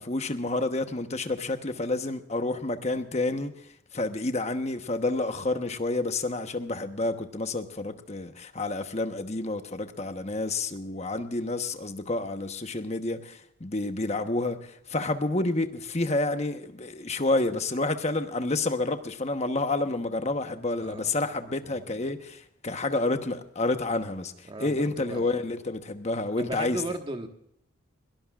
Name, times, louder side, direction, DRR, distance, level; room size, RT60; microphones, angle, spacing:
voice 1, 0.0-3.5 3.9-26.8, left 2 dB, 30° left, 1.1 m, -29 dB
voice 2, 20.8-21.1 21.7-22.0 24.4-25.3 26.4-27.3, right 2 dB, 25° right, 1.4 m, -36 dB
22.0 x 18.5 x 2.4 m
head